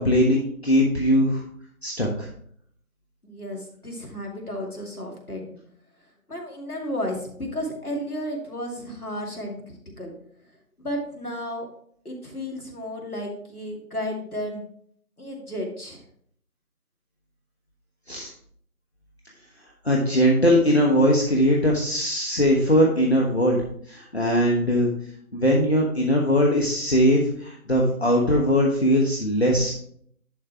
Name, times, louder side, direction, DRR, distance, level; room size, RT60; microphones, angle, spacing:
voice 1, 0.0-1.4 1.8-2.3 18.1-18.3 19.8-23.6 23.9-24.9 25.3-29.7, equal, 45° left, -2 dB, 1.3 m, -20 dB
voice 2, 3.2-5.6 6.3-10.1 10.8-11.7 12.0-14.6 15.2-16.0, equal, 90° left, 1 dB, 2.5 m, -33 dB
10.5 x 3.6 x 4.5 m, 0.63 s
figure-of-eight pair, 170°, 43 cm